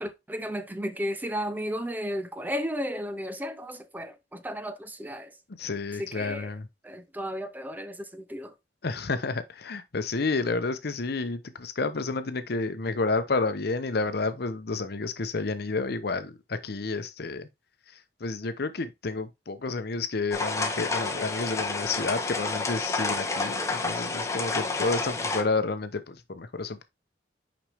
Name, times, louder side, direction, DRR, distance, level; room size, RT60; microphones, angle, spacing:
voice 1, 0.0-5.3 6.0-6.5 6.8-8.5, equal, 10° right, 0.5 m, -34 dB
voice 2, 5.6-6.7 8.8-17.5 18.2-26.8, left 3 dB, 65° left, 0.8 m, -30 dB
sound 1, 20.3-25.4, left 3 dB, 20° left, 1.1 m, -30 dB
6.0 x 5.2 x 3.4 m
head